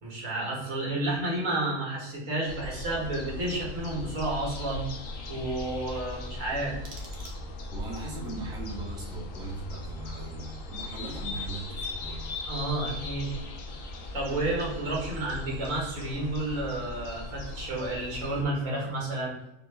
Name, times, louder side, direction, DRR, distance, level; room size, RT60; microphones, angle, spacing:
voice 1, 0.0-4.8 5.3-6.8 12.5-13.3 14.1-19.4, right 2 dB, 80° right, -4 dB, 1.6 m, -31 dB
sound 1, 2.5-18.4, left 2 dB, 80° left, 1.0 m, -38 dB
sound 2, 6.4-7.8, right 3 dB, 60° right, 1.0 m, -51 dB
voice 2, 7.7-12.2, right 3 dB, 5° right, -4 dB, 0.6 m, -39 dB
5.0 x 2.1 x 3.1 m, 0.91 s
omnidirectional pair, 1.4 m